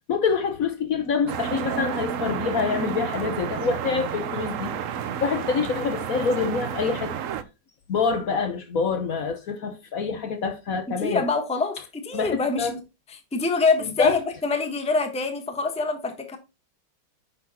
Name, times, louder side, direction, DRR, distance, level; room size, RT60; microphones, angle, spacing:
voice 1, 0.1-4.7 5.2-7.1 7.9-11.2 12.1-12.7 14.0-14.2, left 5 dB, 55° left, 1.3 m, -26 dB
sound 1, 1.3-7.4, right 8 dB, 60° right, 0.9 m, -30 dB
voice 2, 11.0-12.8 13.3-16.4, left 3 dB, 5° left, 0.9 m, -25 dB
9.4 x 6.1 x 2.9 m
omnidirectional pair, 1.9 m